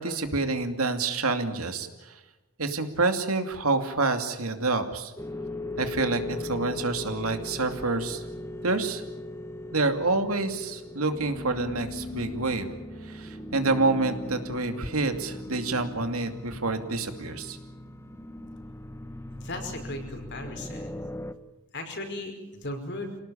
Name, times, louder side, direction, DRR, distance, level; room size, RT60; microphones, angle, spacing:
voice 1, 0.0-2.2 2.6-5.1 5.8-8.2 8.6-9.0 9.7-12.7 13.0-17.6, right 3 dB, 80° right, 7 dB, 2.6 m, -28 dB
sound 1, 5.2-21.3, left 1 dB, 10° left, 1.0 m, -39 dB
voice 2, 19.3-20.9 21.7-23.1, left 1 dB, 55° left, 4 dB, 5.3 m, -37 dB
27.5 x 18.5 x 8.7 m, 1.0 s
head